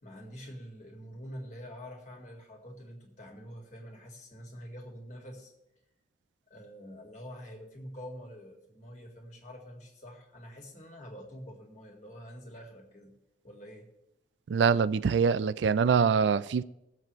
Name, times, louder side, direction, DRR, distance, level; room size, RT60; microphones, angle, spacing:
voice 1, 0.0-5.5 6.5-13.1 13.4-13.9, equal, 40° left, 2.1 m, -46 dB
voice 2, 14.5-16.6, right 6 dB, 80° right, 0.4 m, -24 dB
19.5 x 7.7 x 3.1 m
head